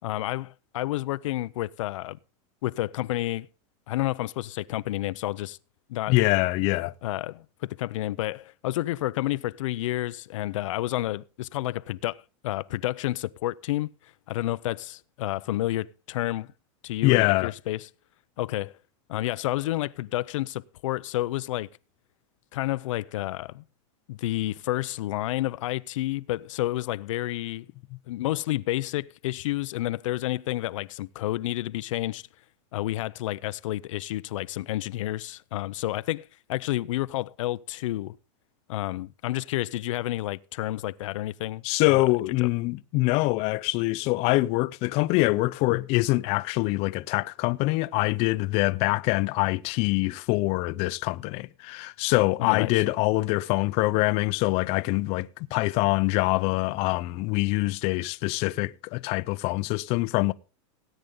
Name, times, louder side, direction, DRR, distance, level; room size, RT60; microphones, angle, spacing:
voice 1, 0.0-2.2 2.6-3.5 3.9-5.6 5.9-6.1 7.0-13.9 14.3-16.5 16.8-17.9 18.4-18.7 19.1-21.7 22.5-23.6 24.1-27.7 28.1-32.3 32.7-38.2 38.7-41.6 41.9-42.0 42.4-42.5 52.4-52.8, left 16 dB, 80° left, 0.6 m, -30 dB
voice 2, 6.1-6.9 17.0-17.5 41.6-60.3, left 21 dB, 40° left, 0.6 m, -24 dB
17.5 x 9.2 x 3.8 m
supercardioid pair, 155°, 16 cm